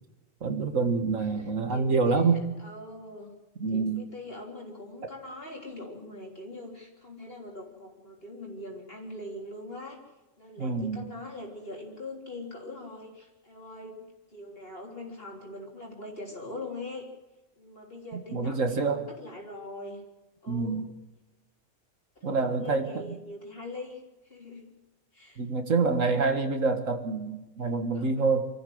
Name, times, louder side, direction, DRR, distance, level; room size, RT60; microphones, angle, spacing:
voice 1, 0.4-2.4 3.6-4.1 10.6-11.1 18.3-19.0 20.5-20.9 22.2-23.1 25.4-28.5, right 4 dB, 85° right, 6 dB, 2.0 m, -27 dB
voice 2, 1.2-3.3 3.7-10.0 10.4-17.1 17.6-20.0 20.4-20.8 22.2-24.8 25.1-25.4 27.9-28.3, left 2 dB, 50° left, -2 dB, 3.9 m, -42 dB
25.0 x 14.0 x 7.9 m, 1.0 s
omnidirectional pair, 1.3 m